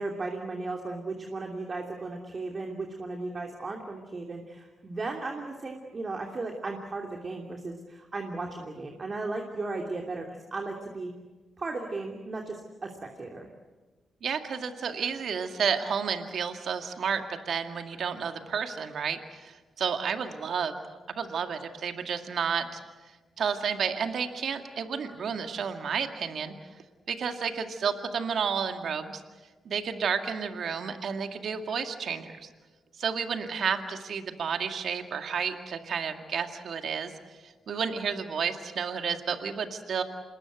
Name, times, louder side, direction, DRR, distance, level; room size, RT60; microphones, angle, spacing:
voice 1, 0.0-11.1 11.6-13.5, right 3 dB, 45° right, 2 dB, 2.9 m, -36 dB
voice 2, 14.2-20.7 21.1-22.8 23.4-26.5 27.1-29.2 29.7-32.5 33.0-37.1 37.4-40.0, right 6 dB, 65° right, 7 dB, 2.0 m, -31 dB
27.0 x 21.0 x 8.1 m, 1.3 s
hypercardioid pair, 40°, 0 cm